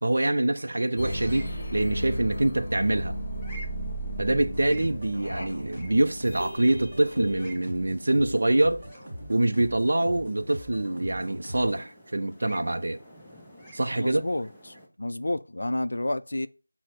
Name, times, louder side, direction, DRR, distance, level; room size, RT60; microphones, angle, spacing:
voice 1, 0.0-3.1 4.2-8.8 9.3-13.0 13.7-14.2, right 1 dB, 50° right, 0.4 m, -25 dB
sound 1, 0.5-14.9, right 1 dB, 5° left, 0.6 m, -51 dB
sound 2, 1.0-7.5, equal, 35° left, 1.0 m, -34 dB
sound 3, 4.3-11.9, equal, 15° right, 1.7 m, -42 dB
voice 2, 14.0-16.5, left 1 dB, 55° left, 0.3 m, -30 dB
5.7 x 2.0 x 4.5 m
figure-of-eight pair, 170°, 0 cm